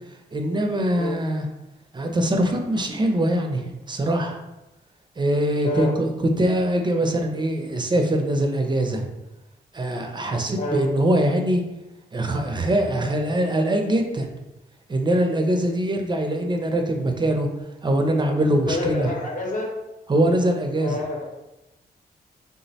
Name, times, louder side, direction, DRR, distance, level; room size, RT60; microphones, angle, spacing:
voice 1, 0.3-1.5 1.9-4.4 5.2-9.1 9.7-11.6 12.1-14.3 14.9-17.5 17.8-19.1 20.1-21.0, right 1 dB, 25° right, 4 dB, 0.4 m, -22 dB
voice 2, 5.6-5.9 10.6-10.8 18.7-19.7 20.8-21.2, left 2 dB, 50° left, -1 dB, 0.8 m, -27 dB
3.5 x 2.0 x 2.7 m, 0.98 s
cardioid pair, 75°, 17 cm